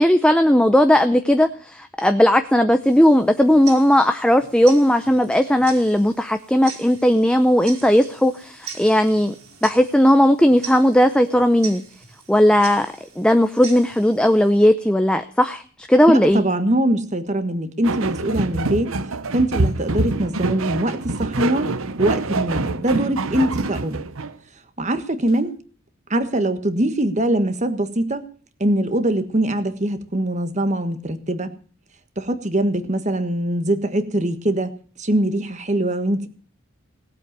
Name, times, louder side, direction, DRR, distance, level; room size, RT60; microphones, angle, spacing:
voice 1, 0.0-9.3 9.6-11.8 12.3-12.9 13.2-16.4, equal, 5° left, 8 dB, 0.6 m, -16 dB
Tick-tock, 2.8-14.5, right 7 dB, 90° right, 4.2 m, -41 dB
voice 2, 16.1-18.9 19.3-21.7 22.0-24.0 24.8-25.5 26.1-28.3 28.6-31.5 32.2-34.7 35.0-36.3, right 1 dB, 35° right, 10 dB, 1.5 m, -22 dB
sound 1, 17.8-24.4, right 3 dB, 75° right, 0.9 m, -25 dB
18.5 x 8.2 x 7.4 m, 0.42 s
head